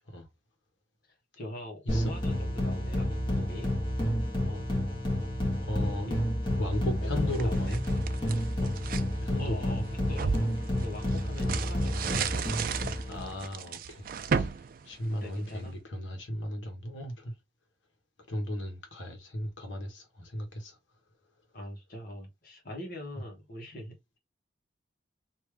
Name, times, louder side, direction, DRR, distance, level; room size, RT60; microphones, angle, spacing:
voice 1, 1.4-3.7 4.4-4.7 6.0-6.2 7.0-7.8 8.6-8.7 9.4-10.4 10.8-12.4 15.1-15.7 21.5-24.2, left 1 dB, 50° left, 1.5 m, -43 dB
sound 1, 1.9-13.4, left 1 dB, 25° left, 1.4 m, -30 dB
voice 2, 5.6-6.1 6.6-7.8 9.2-9.8 11.6-12.2 13.0-14.5 14.8-17.3 18.3-20.8, left 1 dB, 90° left, 1.3 m, -36 dB
sound 2, 7.1-9.1 9.6-15.7, right 6 dB, 50° right, 0.4 m, -34 dB
3.3 x 2.7 x 3.2 m
head